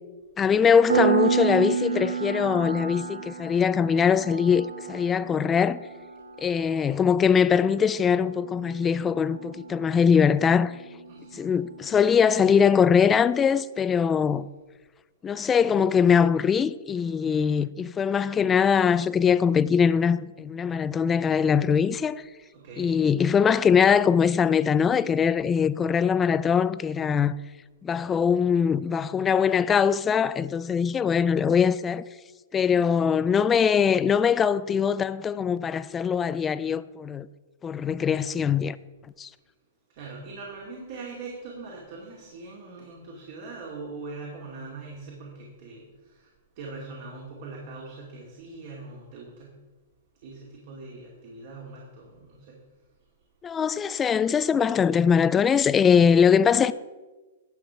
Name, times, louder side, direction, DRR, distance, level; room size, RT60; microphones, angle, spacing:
voice 1, 0.4-5.8 6.4-10.8 11.3-14.5 15.2-22.2 22.8-27.4 27.8-32.0 32.5-37.3 37.6-38.8 39.2-39.3 53.4-56.7, left 7 dB, 15° left, 0.3 m, -22 dB
Piano, 0.9-11.3, right 6 dB, 85° right, 1.4 m, -31 dB
voice 2, 11.1-11.5 22.5-22.9 40.0-46.3 46.6-49.5 50.2-52.6, right 3 dB, 55° right, 2.3 m, -41 dB
11.5 x 4.8 x 7.0 m
hypercardioid pair, 145°, 0 cm